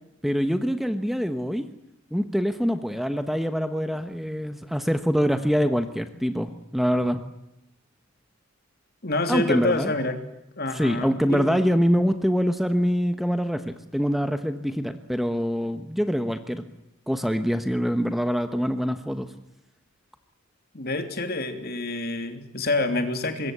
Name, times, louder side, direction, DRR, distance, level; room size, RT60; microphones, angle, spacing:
voice 1, 0.2-1.7 2.1-7.2 9.3-9.9 10.7-16.6 17.1-19.3, equal, ahead, 8 dB, 1.1 m, -24 dB
voice 2, 9.0-10.2 10.6-11.6 20.7-23.5, left 2 dB, 45° left, 7 dB, 3.1 m, -27 dB
25.5 x 22.0 x 8.1 m, 0.88 s
head